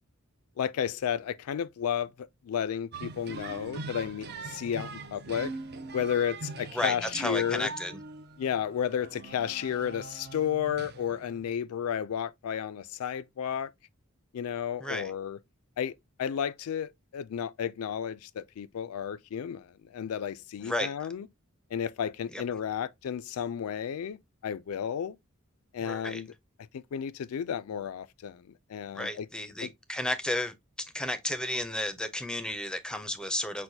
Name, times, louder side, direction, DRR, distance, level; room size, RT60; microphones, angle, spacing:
voice 1, 0.6-5.5 5.9-7.7 8.4-13.7 14.3-15.4 15.8-15.9 16.2-21.3 21.7-24.2 24.4-25.2 25.7-26.3 26.7-29.3 29.6-29.7, left 8 dB, 90° left, 0.3 m, -32 dB
sound 1, 2.9-11.5, right 3 dB, 50° right, 0.5 m, -42 dB
voice 2, 6.7-8.0 14.8-15.1 20.6-20.9 22.3-22.4 25.8-26.2 28.9-30.5 30.9-33.6, left 1 dB, 5° left, 0.4 m, -33 dB
6.1 x 2.1 x 2.7 m
head